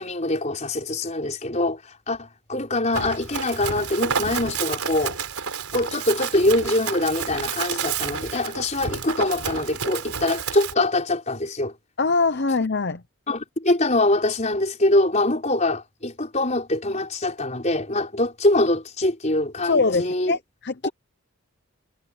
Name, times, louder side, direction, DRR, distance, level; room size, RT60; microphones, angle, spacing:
voice 1, 0.0-5.2 5.7-11.7 13.3-20.4 20.8-20.9, left 2 dB, 30° left, 5.2 m, -24 dB
Run, 2.9-10.7, right 6 dB, 85° right, 4.1 m, -30 dB
voice 2, 12.0-13.0 19.6-20.4 20.6-20.9, left 3 dB, 50° left, 0.8 m, -22 dB
head